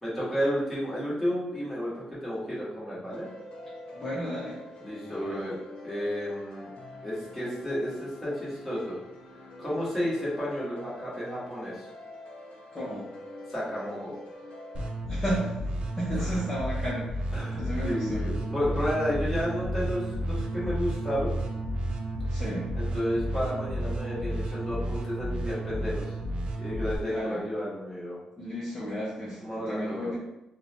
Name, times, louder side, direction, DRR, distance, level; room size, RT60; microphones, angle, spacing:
voice 1, 0.0-3.3 4.8-5.6 5.8-6.7 7.0-9.0 9.6-11.9 13.5-14.1 16.1-16.4 17.3-21.3 22.8-26.1 26.6-28.2 29.4-30.1, equal, 5° left, -9 dB, 1.3 m, -32 dB
sound 1, 3.1-14.9, left 1 dB, 75° left, 0.7 m, -46 dB
voice 2, 3.9-4.6 5.1-5.4 12.7-13.0 15.1-15.5 16.0-17.2 17.5-18.2 22.3-22.7 27.1-27.4 28.4-29.4 29.7-30.2, equal, 20° left, -8 dB, 0.6 m, -33 dB
sound 2, 14.7-27.0, right 1 dB, 50° right, 0.4 m, -32 dB
4.2 x 2.1 x 2.7 m, 0.92 s
wide cardioid pair, 160°, 2 cm